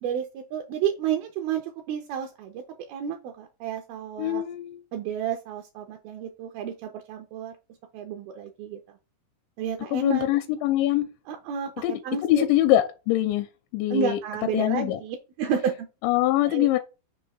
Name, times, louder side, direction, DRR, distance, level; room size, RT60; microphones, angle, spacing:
voice 1, 0.0-4.4 4.9-7.6 7.9-8.8 9.6-10.3 11.3-11.7 12.0-12.4 13.9-15.9 16.5-16.7, right 7 dB, 80° right, 2.2 m, -31 dB
voice 2, 4.2-4.8 9.9-11.1 11.8-13.5 13.7-14.2 14.5-15.0 16.0-16.8, left 14 dB, 85° left, 2.9 m, -23 dB
6.7 x 2.7 x 5.4 m
omnidirectional pair, 5.2 m